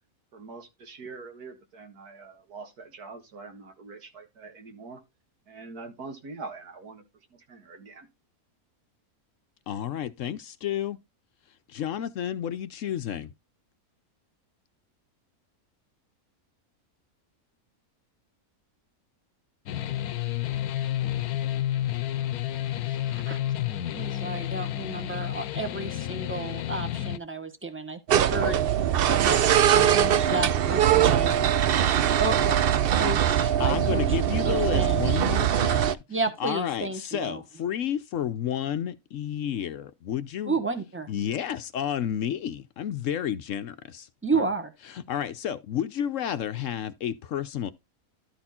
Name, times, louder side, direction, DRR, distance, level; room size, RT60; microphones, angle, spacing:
voice 1, 0.3-5.0 5.5-7.0 7.3-8.1, right 4 dB, 90° right, 2.2 m, -43 dB
voice 2, 9.7-11.0 11.7-13.3 21.0-21.1 33.6-36.0 36.4-40.6 41.1-44.1 44.3-44.5 44.8-47.7, left 10 dB, 65° left, 0.9 m, -31 dB
sound 1, 19.7-27.2, left 12 dB, 80° left, 1.1 m, -30 dB
voice 3, 22.9-23.4 23.9-28.6 29.0-31.4 32.0-34.0 34.4-35.2 36.1-37.4 40.4-41.1 44.2-44.7, right 3 dB, 10° right, 1.2 m, -32 dB
sound 2, 28.1-35.9, right 10 dB, 65° right, 0.5 m, -22 dB
12.5 x 4.3 x 4.3 m
omnidirectional pair, 1.6 m